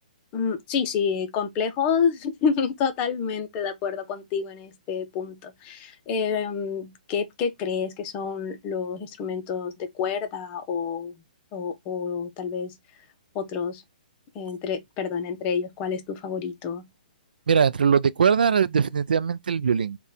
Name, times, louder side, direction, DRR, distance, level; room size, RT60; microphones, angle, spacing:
voice 1, 0.3-11.1 11.5-12.7 13.3-13.8 14.3-16.8, left 6 dB, 30° left, 0.7 m, -28 dB
voice 2, 17.5-20.0, right 6 dB, 85° right, 0.3 m, -21 dB
3.7 x 2.3 x 4.0 m
hypercardioid pair, 145°, 5 cm